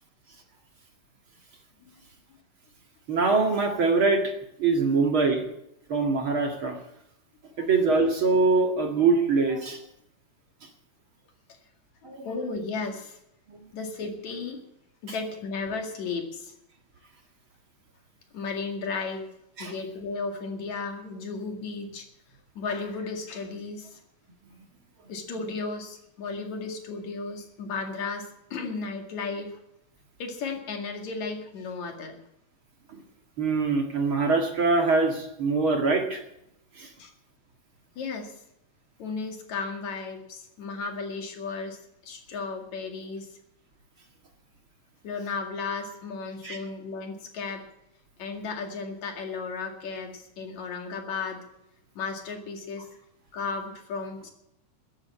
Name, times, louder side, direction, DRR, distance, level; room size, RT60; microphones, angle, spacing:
voice 1, 3.1-4.2 4.6-5.4 5.9-6.8 7.6-9.8 12.0-12.3 13.5-13.6 19.6-19.7 32.9-33.0 33.4-36.2 36.8-36.9 46.4-46.6, right 4 dB, 45° right, 3 dB, 2.5 m, -23 dB
voice 2, 12.0-13.2 13.7-14.6 15.0-16.5 18.3-19.3 19.6-22.1 22.5-24.0 25.1-29.6 30.2-32.2 37.0-37.1 38.0-38.4 39.0-43.3 45.0-47.6 48.2-51.5 51.9-52.9 53.3-54.3, left 4 dB, 65° left, 4 dB, 3.4 m, -34 dB
14.5 x 10.5 x 8.5 m, 0.79 s
omnidirectional pair, 3.5 m